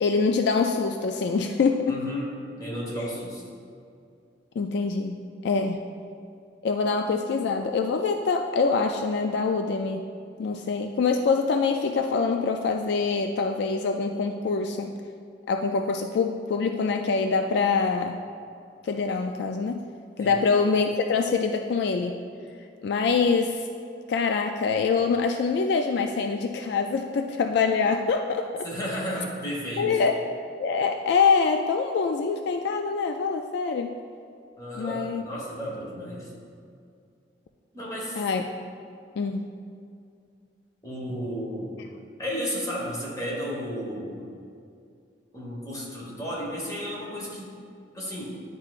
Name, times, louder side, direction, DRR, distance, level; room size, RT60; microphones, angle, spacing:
voice 1, 0.0-2.0 4.6-5.8 6.6-10.1 10.4-15.0 15.5-18.2 18.8-19.8 20.2-22.2 22.8-23.7 24.1-28.7 29.8-30.2 30.6-34.0 34.7-35.2 38.2-38.4 39.2-39.4, left 4 dB, 65° left, 4 dB, 0.3 m, -25 dB
voice 2, 1.9-2.3 2.6-3.4 20.2-20.4 28.6-30.0 34.6-36.3 37.7-38.2 40.8-41.8 42.2-44.3 45.3-47.5 47.9-48.2, equal, 20° left, -4 dB, 1.3 m, -33 dB
10.0 x 4.7 x 2.4 m, 2.3 s
head